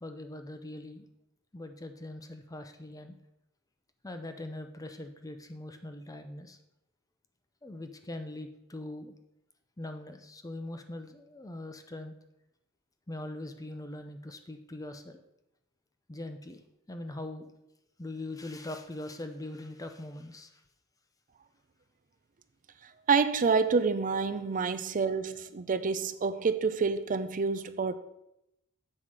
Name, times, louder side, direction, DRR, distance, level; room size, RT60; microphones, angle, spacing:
voice 1, 0.0-1.1 1.5-3.1 4.0-6.6 7.6-9.1 9.8-12.1 13.1-15.2 16.1-16.6 16.9-17.5 18.0-20.5, left 1 dB, 15° left, 0.6 m, -41 dB
voice 2, 23.1-28.0, right 5 dB, 35° right, 0.5 m, -28 dB
7.6 x 5.7 x 4.8 m
head